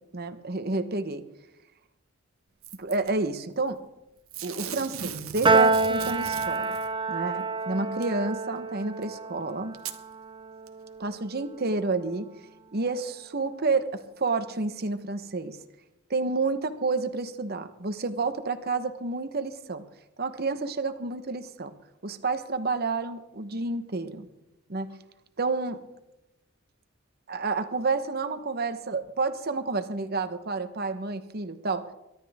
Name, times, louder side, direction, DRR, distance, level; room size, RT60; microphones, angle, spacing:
voice 1, 0.1-1.2 2.8-3.8 4.4-6.8 7.1-9.8 11.0-12.3 12.7-15.6 16.1-19.8 20.2-21.7 22.0-24.3 24.7-24.9 25.4-25.8 27.3-31.9, right 3 dB, 50° right, 9 dB, 1.0 m, -30 dB
Packing tape duct tape / Tearing, 2.6-3.1 4.3-6.9 8.0-8.1 9.0-9.1 9.7-10.0 10.7-10.8, right 8 dB, 90° right, 1.2 m, -38 dB
Piano, 5.4-12.0, right 3 dB, 25° right, 0.6 m, -28 dB
22.5 x 12.5 x 3.6 m, 0.90 s
head